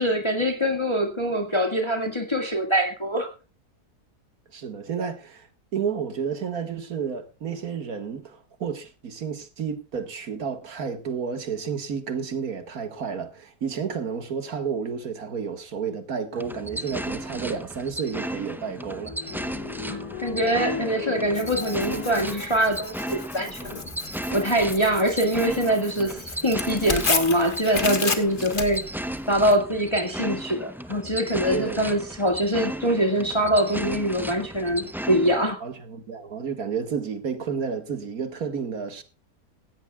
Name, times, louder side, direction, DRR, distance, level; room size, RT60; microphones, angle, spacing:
voice 1, 0.0-3.3 19.9-23.8 24.3-28.8 29.3-35.6, equal, 20° left, 1.9 m, -24 dB
voice 2, 4.5-19.2 31.5-31.8 35.6-39.0, right 6 dB, 70° right, 2.2 m, -31 dB
sound 1, 16.4-35.5, equal, ahead, 0.5 m, -35 dB
sound 2, 18.2-23.8 24.6-25.0 26.2-26.3 27.0-27.4 29.5-30.1 30.8-30.9 31.1-31.2, left 5 dB, 75° left, 3.3 m, -39 dB
Tearing, 21.4-29.6, left 4 dB, 35° left, 1.6 m, -32 dB
16.5 x 16.0 x 2.4 m
omnidirectional pair, 1.6 m